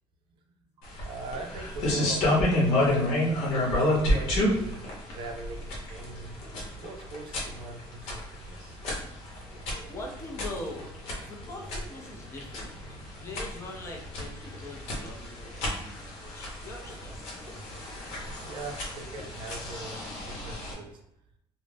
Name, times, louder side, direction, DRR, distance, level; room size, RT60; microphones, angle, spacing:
sound 1, 0.8-20.7, left 1 dB, 75° left, 0.9 m, -31 dB
voice 1, 0.8-3.2 3.8-6.4 6.8-8.8 18.4-21.0, right 2 dB, 50° right, 4 dB, 0.5 m, -41 dB
voice 2, 9.9-10.8 11.2-12.8 13.2-17.4, left 2 dB, 25° left, 1 dB, 0.6 m, -42 dB
2.5 x 2.1 x 3.3 m, 0.82 s
cardioid pair, 150°, 11 cm